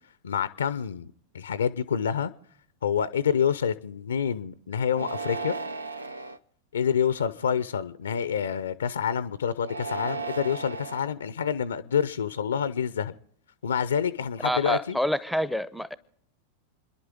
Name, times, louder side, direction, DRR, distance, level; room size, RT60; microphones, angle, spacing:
voice 1, 0.2-2.3 2.8-5.6 6.7-13.1 13.6-15.0, left 7 dB, 70° left, 0.6 m, -27 dB
sound 1, 4.9-6.4 7.1-7.6 9.6-11.1, right 4 dB, 80° right, 0.6 m, -35 dB
voice 2, 14.4-16.0, equal, ahead, 0.7 m, -27 dB
29.5 x 11.0 x 3.6 m
figure-of-eight pair, 90°, 0 cm